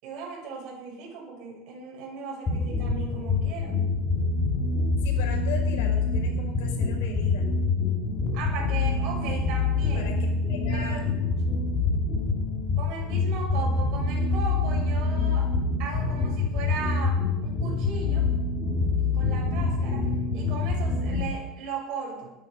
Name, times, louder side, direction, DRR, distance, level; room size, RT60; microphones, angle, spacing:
voice 1, 0.0-3.8 8.3-10.1 10.7-11.1 12.8-15.5 15.8-18.3 19.1-20.1 20.3-22.3, right 4 dB, 45° right, -1 dB, 6.6 m, -37 dB
sound 1, 2.5-21.2, left 3 dB, 15° left, 2.5 m, -26 dB
voice 2, 5.0-7.5 9.9-11.0, left 6 dB, 85° left, 3 dB, 4.8 m, -38 dB
21.0 x 10.5 x 5.3 m, 0.96 s
cardioid pair, 175°, 0 cm